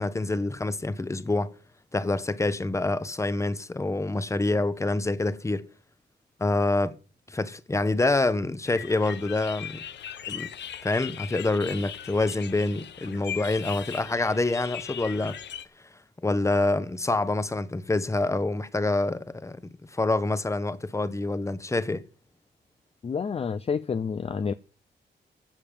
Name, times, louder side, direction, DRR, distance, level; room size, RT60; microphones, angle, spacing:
voice 1, 0.0-1.5 1.9-5.7 6.4-6.9 7.3-9.8 10.3-10.5 10.8-15.4 16.2-22.1, left 2 dB, 15° left, 1.1 m, -26 dB
sound 1, 8.6-15.6, left 9 dB, 75° left, 1.0 m, -39 dB
voice 2, 23.0-24.5, left 6 dB, 35° left, 0.5 m, -29 dB
15.0 x 7.3 x 6.8 m
wide cardioid pair, 130°, 19 cm